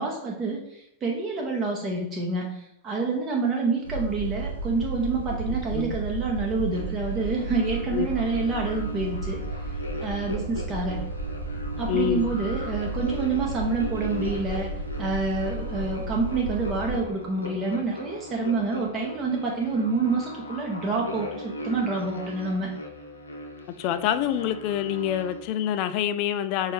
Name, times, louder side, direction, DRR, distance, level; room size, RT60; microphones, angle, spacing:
voice 1, 0.0-9.4 9.7-9.8 10.0-11.0 11.8-14.7 15.0-22.7, right 3 dB, 25° right, 0.7 m, -28 dB
sound 1, 3.8-17.0, right 3 dB, 70° right, 0.4 m, -33 dB
sound 2, 6.7-25.4, left 1 dB, 80° left, 0.6 m, -39 dB
voice 2, 11.9-12.3 23.8-26.7, left 10 dB, 45° left, 0.3 m, -26 dB
5.2 x 2.7 x 3.1 m
figure-of-eight pair, 90°, 0 cm